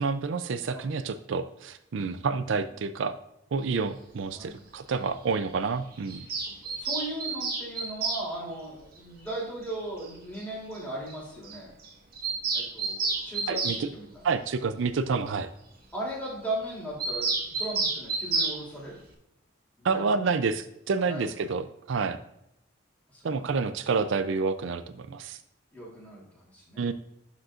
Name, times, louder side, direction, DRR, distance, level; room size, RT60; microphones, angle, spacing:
voice 1, 0.0-3.2 3.5-6.3 13.5-13.9 14.2-15.5 19.8-22.2 23.2-25.4 26.8-26.9, right 4 dB, 70° right, 11 dB, 0.4 m, -29 dB
Bird vocalization bird call bird song, 6.1-8.2 9.7-9.8 10.0-10.1 10.3-10.4 10.7-10.8 11.1-11.2 11.4-11.6 11.8-13.8 17.0-18.6, right 4 dB, 50° right, 1.3 m, -30 dB
voice 2, 6.5-11.7 12.5-14.3 15.9-19.0 19.8-20.1 21.0-21.3 23.1-23.6 25.7-26.9, right 1 dB, 10° left, -6 dB, 3.0 m, -38 dB
11.5 x 5.3 x 2.5 m, 0.82 s
head